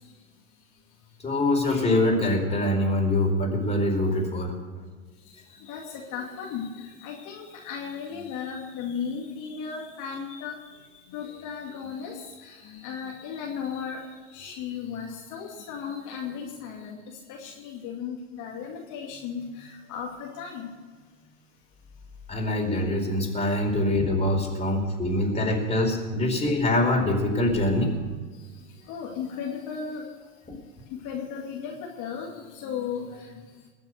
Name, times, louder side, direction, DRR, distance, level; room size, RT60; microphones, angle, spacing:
voice 1, 1.2-4.5 22.3-27.9 33.1-33.2, left 1 dB, 15° left, 0 dB, 4.7 m, -24 dB
voice 2, 5.5-10.6 10.9-14.1 14.3-20.7 23.7-23.8 24.5-24.6 28.8-30.0 30.9-33.4, left 7 dB, 50° left, -2 dB, 2.5 m, -36 dB
21.5 x 7.4 x 6.7 m, 1.4 s
hypercardioid pair, 85°, 38 cm